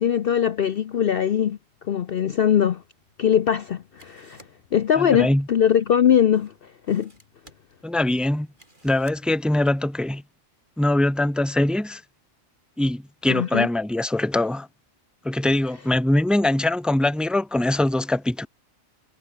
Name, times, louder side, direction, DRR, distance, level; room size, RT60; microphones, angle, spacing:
voice 1, 0.0-1.6 1.9-2.8 3.2-4.4 4.7-6.5 6.9-7.1 13.3-13.7, left 9 dB, 55° left, 0.7 m, -21 dB
sound 1, 2.3-9.8, right 1 dB, 35° right, 7.7 m, -58 dB
voice 2, 5.0-5.5 7.8-8.5 8.8-10.2 10.8-12.0 12.8-14.7 15.2-18.5, left 1 dB, ahead, 0.9 m, -22 dB
omnidirectional pair, 1.4 m